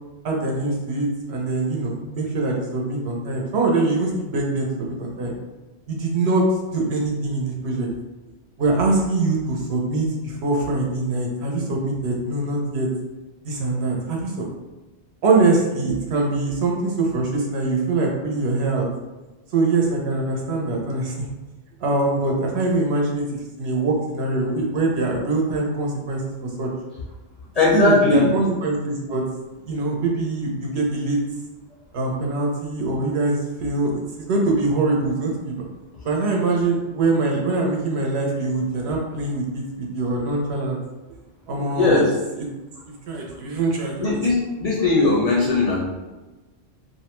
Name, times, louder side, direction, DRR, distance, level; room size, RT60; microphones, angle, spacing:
voice 1, 0.2-5.3 5.9-7.9 8.6-12.9 13.4-14.5 15.2-18.9 19.5-21.3 21.8-23.3 23.6-26.7 27.7-29.2 29.7-31.2 31.9-35.6 36.0-40.8 41.5-42.0 42.3-42.5 43.1-44.2, right 3 dB, 75° right, -1 dB, 0.9 m, -23 dB
voice 2, 27.5-28.3 41.7-42.1 44.0-45.9, left 3 dB, 50° left, -5 dB, 0.5 m, -19 dB
2.5 x 2.1 x 2.9 m, 1.1 s
omnidirectional pair, 1.1 m